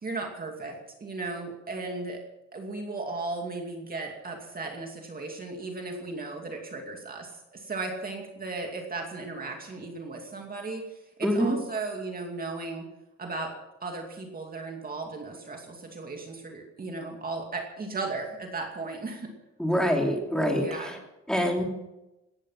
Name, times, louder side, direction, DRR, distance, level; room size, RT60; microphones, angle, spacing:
voice 1, 0.0-2.2 2.5-12.9 13.2-13.5 13.8-19.3 20.5-21.0, right 3 dB, 30° right, 2 dB, 2.5 m, -36 dB
voice 2, 11.2-11.6 19.6-21.0 21.3-21.6, equal, ahead, 0 dB, 3.0 m, -25 dB
17.5 x 13.5 x 5.8 m, 0.93 s
wide cardioid pair, 170°, 29 cm